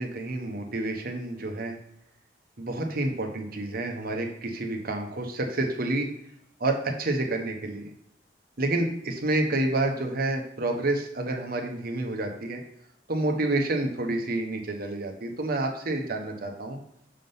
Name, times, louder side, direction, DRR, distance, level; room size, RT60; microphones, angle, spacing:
voice 1, 0.0-1.8 2.6-6.1 6.6-7.9 8.6-12.6 13.1-16.8, right 2 dB, 55° right, 3 dB, 1.1 m, -29 dB
6.6 x 3.7 x 5.5 m, 0.76 s
head